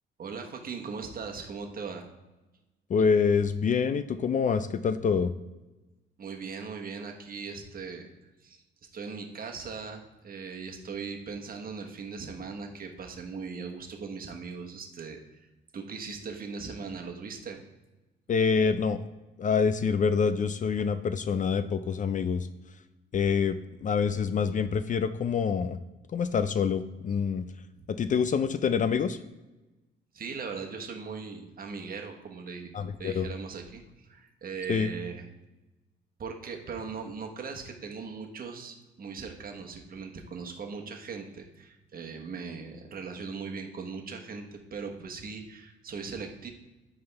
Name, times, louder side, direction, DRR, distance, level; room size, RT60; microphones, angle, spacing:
voice 1, 0.2-2.1 6.2-8.1 8.4-8.6 8.9-15.4 15.7-17.6 27.7-27.8 30.1-35.3 36.2-46.5, right 5 dB, 45° right, 3 dB, 1.2 m, -39 dB
voice 2, 2.9-5.3 18.3-19.0 19.4-22.5 23.1-25.8 26.1-27.4 28.0-29.2 32.7-33.3 34.7-34.9, left 6 dB, 40° left, 11 dB, 0.4 m, -26 dB
9.4 x 3.5 x 3.4 m, 1.1 s
cardioid pair, 90°, 20 cm